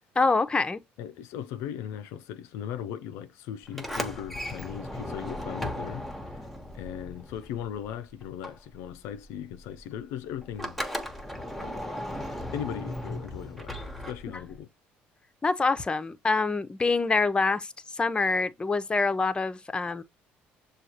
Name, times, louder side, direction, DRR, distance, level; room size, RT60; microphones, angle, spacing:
voice 1, 0.2-0.8 15.4-20.0, left 3 dB, 20° left, 0.6 m, -26 dB
voice 2, 1.0-6.5 6.7-10.8 11.6-11.9 12.3-13.8 14.1-14.7, left 9 dB, 80° left, 0.3 m, -38 dB
Sliding door, 3.7-7.9 8.2-14.6, left 1 dB, ahead, 0.9 m, -36 dB
6.3 x 2.3 x 2.8 m
supercardioid pair, 75°, 5 cm